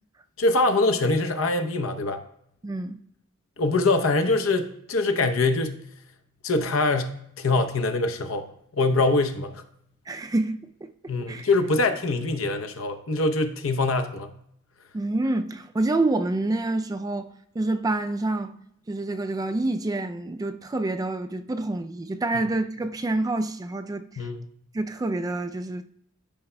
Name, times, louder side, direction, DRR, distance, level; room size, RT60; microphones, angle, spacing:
voice 1, 0.4-2.2 3.6-5.8 6.4-9.6 11.1-14.3 24.2-24.5, left 2 dB, 90° left, 0.8 m, -24 dB
voice 2, 2.6-3.0 10.1-11.5 14.9-18.6 18.9-24.3 24.7-25.8, right 2 dB, 20° right, 0.3 m, -27 dB
13.5 x 5.6 x 2.2 m
head